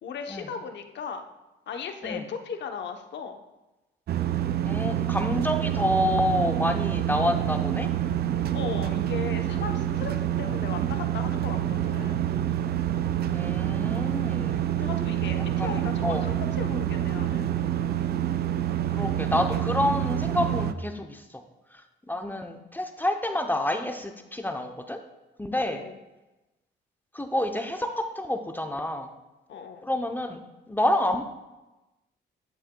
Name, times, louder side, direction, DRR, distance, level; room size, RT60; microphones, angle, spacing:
voice 1, 0.0-1.2 1.7-3.4 8.5-12.3 14.8-17.5 25.5-26.0 29.5-29.8, left 6 dB, 65° left, 6 dB, 0.8 m, -37 dB
sound 1, 4.1-20.7, right 11 dB, 55° right, 0.4 m, -27 dB
voice 2, 4.6-7.9 13.3-14.6 15.6-15.7 16.0-16.3 19.0-21.4 21.7-21.8 22.1-25.0 25.4-25.8 27.1-29.1 29.8-30.4 30.7-31.2, left 1 dB, 10° left, 5 dB, 0.6 m, -28 dB
9.2 x 7.3 x 2.2 m, 1.0 s
cardioid pair, 90°, 20 cm